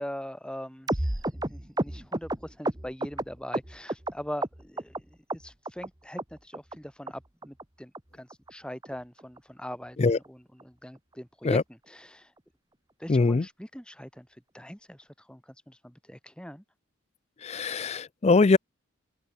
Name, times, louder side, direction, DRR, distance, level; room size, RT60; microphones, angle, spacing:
voice 1, 0.0-12.3 13.0-16.6, equal, 5° left, 5.7 m, -42 dB
sound 1, 0.9-4.1 4.4-5.0 5.3-5.9 6.2-6.3 6.5-6.8 7.1-7.2 7.4-7.6 7.9-8.0 8.3-8.5 8.8-8.9 9.2-9.4 9.7-9.8 10.1-10.3 10.6-10.7, right 1 dB, 20° right, 1.5 m, -31 dB
voice 2, 13.1-13.4 17.4-18.6, left 3 dB, 30° left, 0.4 m, -22 dB
open air
head